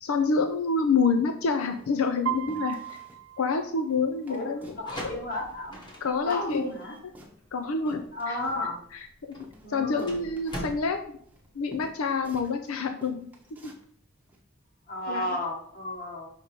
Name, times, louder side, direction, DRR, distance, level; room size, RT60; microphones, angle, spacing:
voice 1, 0.0-2.8 3.4-4.8 6.0-6.6 7.5-8.4 8.9-11.2 11.5-13.3 13.6-13.7 15.1-15.3, left 4 dB, 90° left, 7 dB, 0.5 m, -27 dB
sound 1, 1.0-1.2 1.6-2.1 2.5-3.2 3.5-3.6 3.9-4.9 5.2-6.1 6.4-9.0 9.4-12.7 13.0-13.9 14.3-14.4, equal, 10° right, 0.8 m, -51 dB
Piano, 2.3-4.3, right 12 dB, 70° right, 0.5 m, -36 dB
voice 2, 4.3-5.8 6.2-7.0 8.1-8.8 9.6-10.1 14.9-16.3, left 1 dB, 45° left, 0 dB, 1.7 m, -33 dB
sound 2, 4.6-12.2, equal, 20° left, 1.1 m, -43 dB
5.4 x 5.0 x 4.4 m, 0.62 s
head